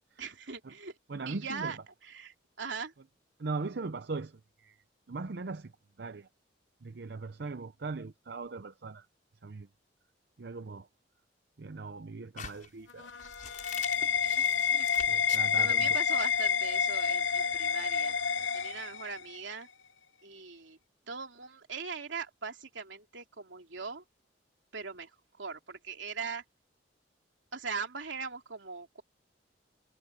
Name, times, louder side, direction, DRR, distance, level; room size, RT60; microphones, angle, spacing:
voice 1, 0.2-1.0 1.3-2.9 14.3-14.5 14.7-14.9 15.5-18.1 18.5-19.7 20.2-20.8 21.1-24.0 24.7-25.1 25.4-26.4 27.5-29.0, right 5 dB, 80° right, 3.0 m, -40 dB
voice 2, 1.1-1.7 3.4-4.8 5.1-5.7 6.0-6.3 6.8-9.1 9.4-9.7 10.4-10.9 11.6-13.1 15.1-16.2, right 3 dB, 60° right, 0.6 m, -39 dB
sound 1, 12.4-16.4, left 7 dB, 45° left, 6.2 m, -45 dB
sound 2, 12.9-19.4, left 7 dB, 80° left, 0.9 m, -29 dB
head